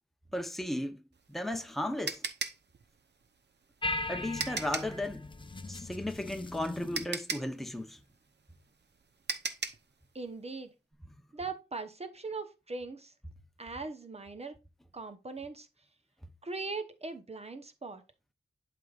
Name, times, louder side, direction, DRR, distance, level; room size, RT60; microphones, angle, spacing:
voice 1, 0.3-1.0 1.3-2.2 4.1-5.2 5.7-8.0, left 1 dB, ahead, 0.9 m, -35 dB
sound 1, 1.1-5.0 6.4-6.5 6.9-9.9, right 5 dB, 80° right, 0.8 m, -37 dB
sound 2, 3.8-7.1, left 2 dB, 30° left, 0.6 m, -38 dB
voice 2, 10.1-10.7 11.3-13.1 13.6-14.5 14.9-15.7 16.4-18.0, right 3 dB, 35° right, 1.0 m, -40 dB
11.0 x 5.2 x 2.5 m
wide cardioid pair, 100°, 17 cm